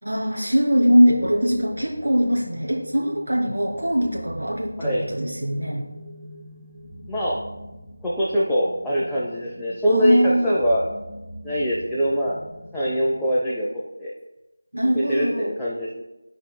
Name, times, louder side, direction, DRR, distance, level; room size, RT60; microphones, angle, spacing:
voice 1, 0.0-5.9 9.9-10.5 14.7-15.5, equal, 90° right, -4 dB, 2.5 m, -21 dB
sound 1, 0.7-13.4, equal, 30° left, 2.2 m, -42 dB
voice 2, 7.1-7.4 8.0-10.8 11.4-12.4 12.7-13.7 14.0-14.1 14.9-16.0, equal, 5° left, -10 dB, 0.6 m, -23 dB
14.0 x 4.8 x 2.2 m, 1.0 s
figure-of-eight pair, 170°, 0 cm